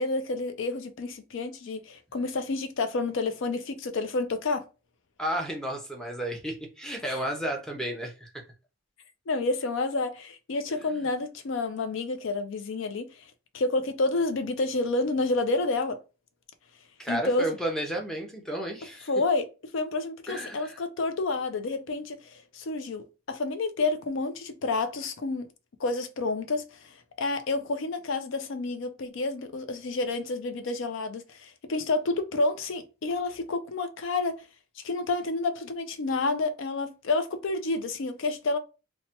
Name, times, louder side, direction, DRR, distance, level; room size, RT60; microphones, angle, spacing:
voice 1, 0.0-4.6 7.1-7.2 9.3-13.2 13.5-16.0 17.1-17.5 19.1-19.5 19.7-25.5 25.8-34.4 34.8-38.6, left 3 dB, 65° left, 0.4 m, -29 dB
voice 2, 5.2-8.4 10.9-11.0 17.0-19.1 20.3-20.8, right 1 dB, 5° left, 0.6 m, -32 dB
3.2 x 2.1 x 2.8 m
head